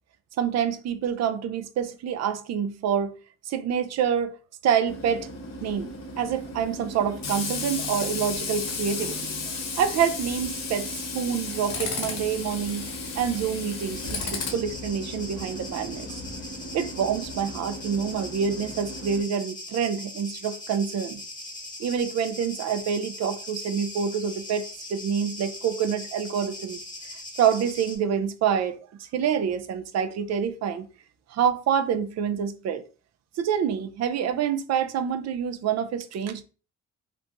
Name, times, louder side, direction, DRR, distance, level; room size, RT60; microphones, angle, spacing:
voice 1, 0.4-3.1 3.5-4.3 4.6-5.3 5.6-5.9 6.2-9.2 9.8-16.1 16.7-21.2 21.8-26.8 27.4-30.9 31.3-32.8 33.4-36.4, right 8 dB, 60° right, 0.4 m, -27 dB
Tools, 4.9-19.2, left 3 dB, 60° left, 0.9 m, -34 dB
sound 1, 13.9-28.0, left 1 dB, 15° left, 0.9 m, -40 dB
3.0 x 2.2 x 2.5 m
cardioid pair, 90°, 30 cm